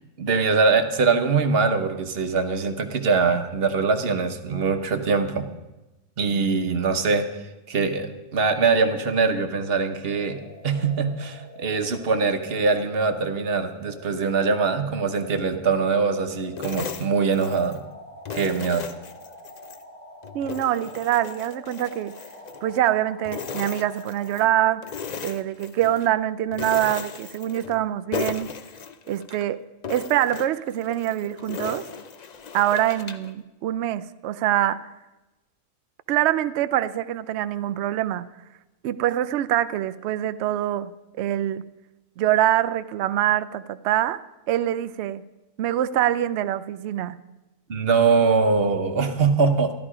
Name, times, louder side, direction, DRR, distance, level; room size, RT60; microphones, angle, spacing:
voice 1, 0.2-5.5 6.2-7.3 7.7-10.4 10.6-17.8 18.3-18.9 47.7-49.7, right 4 dB, 45° right, 7 dB, 1.1 m, -22 dB
sound 1, 10.0-24.7, left 1 dB, 85° left, 3.6 m, -46 dB
sound 2, 16.6-17.8 18.3-19.8 20.2-22.9 23.2-24.5 24.8-26.1 26.5-27.8 28.1-29.4 29.8-33.3, left 6 dB, 70° left, 0.4 m, -36 dB
voice 2, 20.3-22.1 22.6-24.9 25.2-28.5 29.1-29.6 29.9-31.9 32.5-34.9 36.1-38.3 38.8-40.9 41.2-41.6 42.2-44.2 44.5-45.2 45.6-47.2, right 12 dB, 65° right, 13 dB, 0.7 m, -24 dB
13.0 x 12.0 x 4.9 m, 1.0 s
omnidirectional pair, 1.6 m